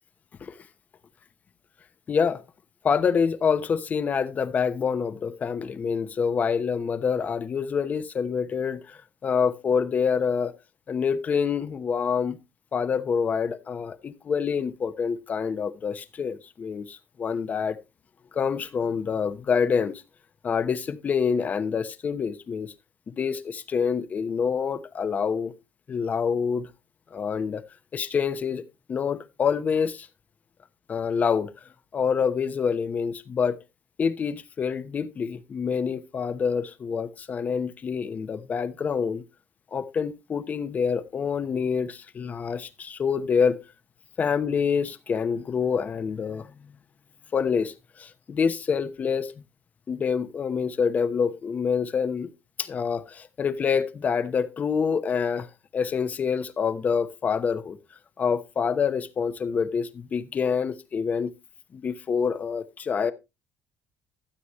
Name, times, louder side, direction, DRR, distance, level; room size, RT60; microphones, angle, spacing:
voice 1, 2.1-2.4 2.8-10.5 10.9-12.4 12.7-17.8 18.3-20.0 20.4-22.7 23.1-25.5 25.9-26.7 27.1-27.6 27.9-28.6 28.9-30.1 30.9-31.5 31.9-33.6 34.0-39.2 39.7-43.6 44.2-46.8 47.3-49.4 49.9-52.3 52.6-55.5 55.7-57.8 58.2-61.3 61.7-63.1, left 6 dB, 35° left, 0.9 m, -26 dB
13.0 x 8.5 x 3.1 m
cardioid pair, 130°, 5 cm